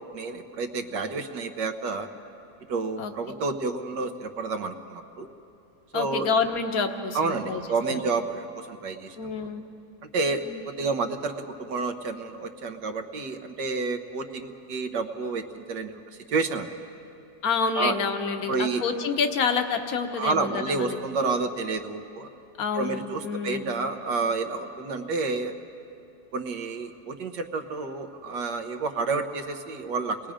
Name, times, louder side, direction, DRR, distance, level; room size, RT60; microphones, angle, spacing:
voice 1, 0.1-2.1 2.7-5.3 5.9-6.3 7.1-9.2 10.1-11.3 11.6-16.0 16.3-16.7 17.8-17.9 18.5-18.8 20.2-22.3 22.7-25.5 26.3-30.3, right 4 dB, 75° right, 6 dB, 1.7 m, -29 dB
voice 2, 5.9-8.0 9.2-9.6 10.3-10.7 17.4-21.0 22.6-23.7, left 5 dB, 55° left, 6 dB, 1.6 m, -28 dB
29.0 x 20.0 x 5.1 m, 2.7 s
omnidirectional pair, 1.9 m